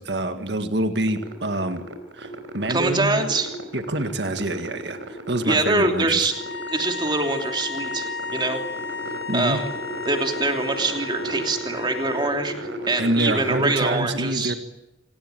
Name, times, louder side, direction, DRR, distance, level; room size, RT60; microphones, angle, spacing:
voice 1, 0.0-1.8 2.1-3.3 3.7-6.3 9.3-9.6 13.0-14.5, right 1 dB, 60° right, 7 dB, 1.9 m, -26 dB
sound 1, 1.1-13.7, right 1 dB, 85° right, 4.0 m, -35 dB
voice 2, 2.7-3.5 5.4-6.3 6.7-8.6 9.3-9.7 10.1-12.5 12.9-14.6, right 2 dB, 25° right, 4 dB, 3.0 m, -24 dB
sound 2, 6.3-12.4, left 5 dB, 70° left, 4.8 m, -34 dB
26.5 x 19.0 x 9.1 m, 0.92 s
head